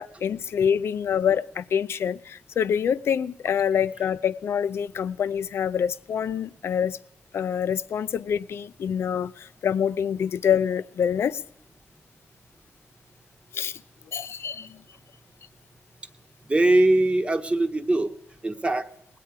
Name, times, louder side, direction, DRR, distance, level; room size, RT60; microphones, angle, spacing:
voice 1, 0.0-7.0 7.3-11.4 13.5-13.8 14.1-14.8, left 8 dB, 70° left, 15 dB, 0.4 m, -26 dB
voice 2, 16.5-18.1 18.4-18.9, right 2 dB, 25° right, 8 dB, 1.1 m, -21 dB
19.5 x 8.5 x 4.8 m, 0.78 s
supercardioid pair, 55°, 4 cm